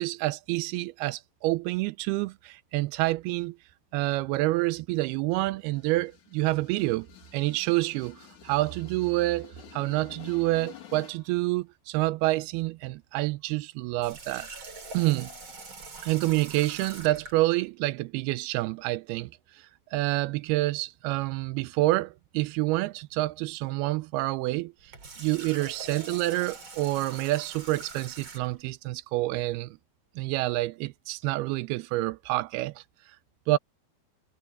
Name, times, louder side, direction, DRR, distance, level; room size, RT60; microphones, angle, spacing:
voice 1, 0.0-3.6 3.9-7.1 7.3-14.5 14.9-15.3 16.0-24.9 25.2-29.8 30.2-32.8 33.5-33.6, right 19 dB, 85° right, 2.6 m, -28 dB
sound 1, 5.6-11.4, left 11 dB, 55° left, 3.2 m, -50 dB
Water tap faucet, 14.0-17.4 24.8-28.6, right 3 dB, 35° right, 3.8 m, -44 dB
omnidirectional pair, 4.5 m